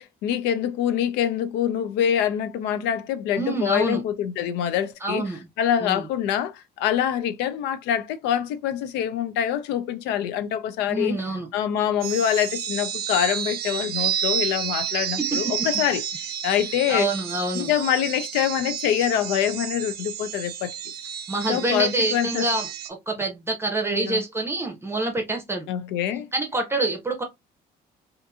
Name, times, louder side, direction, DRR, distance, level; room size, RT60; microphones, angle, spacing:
voice 1, 0.0-5.3 5.6-11.2 11.5-16.0 16.4-17.1 17.5-20.7 21.5-22.5 23.9-24.2 25.7-26.3, left 10 dB, 90° left, 0.4 m, -25 dB
voice 2, 3.4-4.0 5.0-5.4 5.8-6.1 10.9-11.5 15.2-15.7 16.9-17.7 21.3-22.7 23.1-25.7 26.3-27.2, right 2 dB, 15° right, 0.6 m, -26 dB
sound 1, 12.0-22.9, right 9 dB, 70° right, 0.4 m, -30 dB
2.7 x 2.5 x 2.3 m
cardioid pair, 110°, 17 cm